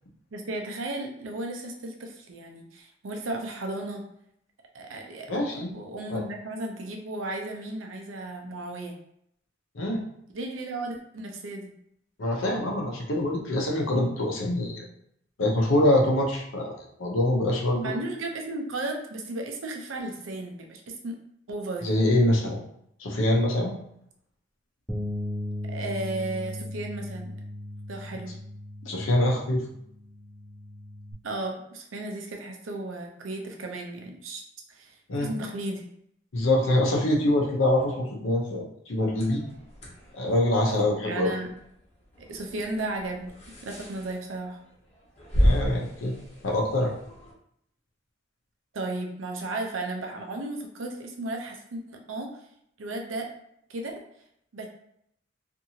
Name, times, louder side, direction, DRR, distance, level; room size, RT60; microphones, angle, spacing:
voice 1, 0.3-4.0 4.7-8.9 10.3-11.7 17.8-21.2 21.5-22.0 25.7-27.3 27.9-28.3 31.2-34.4 34.7-34.9 35.2-35.9 40.7-41.5 42.2-43.3 43.6-44.6 48.7-52.3 52.8-53.3 53.7-53.9 54.5-54.7, right 2 dB, 85° right, 2 dB, 0.6 m, -34 dB
voice 2, 5.3-5.7 6.1-6.2 9.7-10.0 12.2-14.8 15.4-17.9 21.8-22.6 23.0-23.7 28.8-29.6 35.1-35.3 36.3-39.4 40.1-41.3 45.3-46.1 46.4-46.9, left 1 dB, 90° left, -1 dB, 0.7 m, -24 dB
Bass guitar, 24.9-31.1, left 1 dB, 5° right, 0.3 m, -37 dB
sound 1, 39.0-47.3, equal, 35° left, 0.8 m, -32 dB
2.8 x 2.6 x 2.7 m, 0.72 s
head